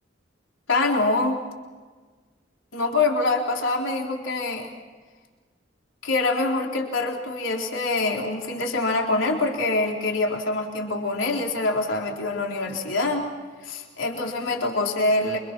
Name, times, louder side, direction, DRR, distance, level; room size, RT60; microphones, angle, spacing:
voice 1, 0.7-1.4 2.7-4.7 6.0-13.3 13.6-15.4, left 2 dB, 80° left, 0 dB, 4.0 m, -25 dB
29.0 x 25.5 x 6.1 m, 1.4 s
head